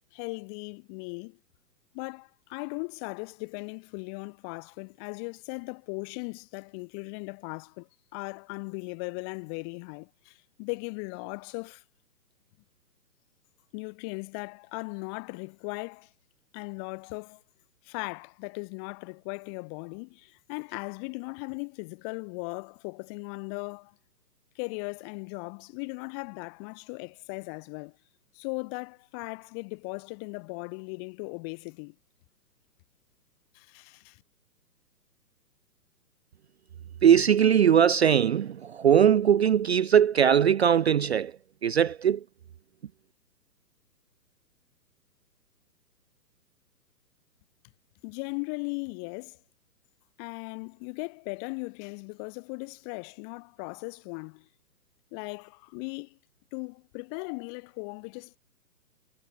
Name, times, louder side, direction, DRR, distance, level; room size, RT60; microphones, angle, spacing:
voice 1, 0.1-1.4 1.9-11.8 13.7-16.1 16.5-17.4 17.8-23.9 24.5-28.0 28.3-31.9 33.5-34.2 48.0-49.4 50.2-54.5 55.1-56.2 56.5-58.4, left 40 dB or more, 15° left, 1.0 m, -38 dB
voice 2, 37.0-41.3 41.6-42.2, right 8 dB, 40° right, 0.6 m, -20 dB
hypercardioid pair, 155°, 50 cm